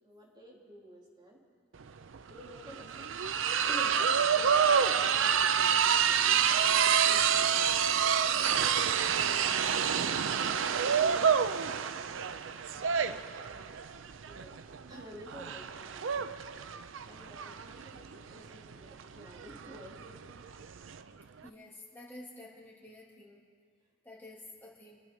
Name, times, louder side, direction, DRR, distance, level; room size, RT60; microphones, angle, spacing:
voice 1, 0.0-1.4 2.2-3.1 3.6-6.3 6.6-8.5 9.7-12.6 13.0-13.7 14.3-14.6 14.9-16.3 17.0-20.4, equal, 25° right, -4 dB, 3.2 m, -51 dB
sound 1, 1.8-1.9 2.1-21.0, right 7 dB, 85° right, 0.5 m, -28 dB
voice 2, 21.4-23.4 24.0-25.0, left 1 dB, 10° left, -5 dB, 2.8 m, -50 dB
27.0 x 9.6 x 5.4 m, 2.1 s
head